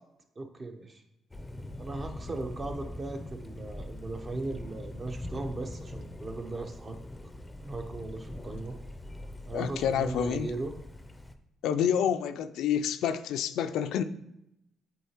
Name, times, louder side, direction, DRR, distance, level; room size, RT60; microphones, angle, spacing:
voice 1, 0.4-1.0 1.8-7.0 7.6-8.7 9.5-10.7, right 2 dB, 35° right, 5 dB, 0.8 m, -37 dB
Thunder, 1.3-11.3, left 1 dB, 10° left, 0.5 m, -42 dB
voice 2, 9.5-10.5 11.6-14.0, left 8 dB, 85° left, 10 dB, 0.3 m, -28 dB
8.1 x 4.0 x 3.0 m, 0.84 s
cardioid pair, 90°, 0 cm